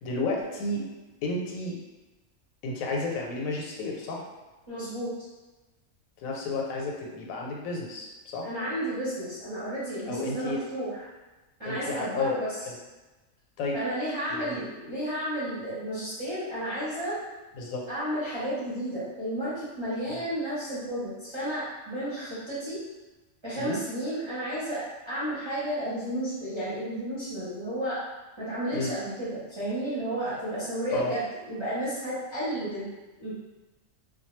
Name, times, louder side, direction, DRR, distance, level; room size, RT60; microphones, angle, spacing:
voice 1, 0.0-0.8 1.2-1.8 2.6-4.2 6.2-8.5 10.1-10.6 11.6-12.3 12.7-12.8 13.6-13.8 14.3-14.6 17.5-17.9 20.1-20.2 23.6-23.8 28.7-28.9 30.9-31.1, left 2 dB, 85° left, -1 dB, 1.0 m, -32 dB
voice 2, 4.7-5.1 8.4-11.0 11.6-12.6 13.7-17.2 17.9-22.8 23.4-28.0 28.4-32.9 33.2-33.4, right 1 dB, 30° right, -11 dB, 0.6 m, -32 dB
2.2 x 2.1 x 3.0 m, 1.2 s
omnidirectional pair, 1.4 m